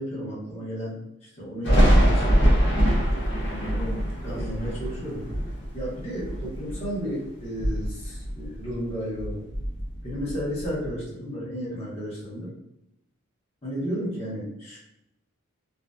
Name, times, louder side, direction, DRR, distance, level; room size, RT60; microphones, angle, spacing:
voice 1, 0.0-2.6 3.5-5.3 5.7-9.4 10.0-12.5 13.6-14.8, equal, 25° left, -9 dB, 0.9 m, -33 dB
Thunder, 1.6-7.1 7.4-8.9 9.2-10.9, equal, 55° left, 0.6 m, -23 dB
2.6 x 2.3 x 2.2 m, 0.83 s
head